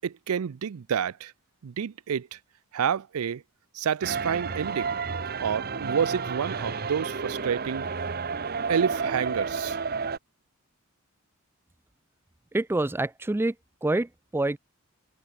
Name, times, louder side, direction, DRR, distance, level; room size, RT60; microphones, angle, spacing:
voice 1, 0.0-1.3 1.6-2.4 2.7-3.4 3.7-5.0 5.4-7.9 8.7-9.8, right 7 dB, 80° right, 0.4 m, -29 dB
sound 1, 4.0-10.2, right 5 dB, 45° right, 0.9 m, -31 dB
voice 2, 12.5-13.5 13.8-14.6, right 2 dB, 10° right, 0.3 m, -26 dB
head